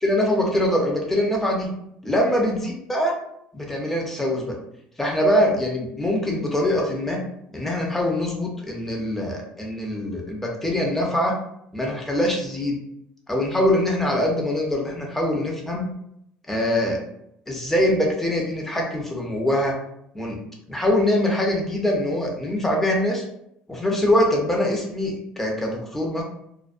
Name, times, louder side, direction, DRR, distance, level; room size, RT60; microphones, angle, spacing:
voice 1, 0.0-1.7 2.0-3.1 3.5-4.5 5.0-7.2 7.5-11.4 11.7-12.8 13.3-15.9 16.5-17.0 17.5-19.7 20.1-20.4 20.7-23.2 23.7-26.2, left 1 dB, 10° left, -1 dB, 0.7 m, -23 dB
2.3 x 2.2 x 2.5 m, 0.75 s
supercardioid pair, 100°, 3 cm